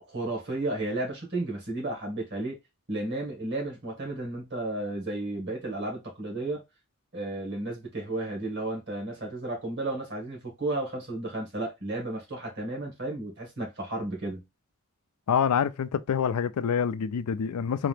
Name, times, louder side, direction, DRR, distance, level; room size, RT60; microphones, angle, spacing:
voice 1, 0.1-2.6 2.9-6.6 7.1-14.4, right 2 dB, 50° right, 1.8 m, -33 dB
voice 2, 15.3-17.9, left 7 dB, 85° left, 0.4 m, -26 dB
3.8 x 2.8 x 3.4 m
head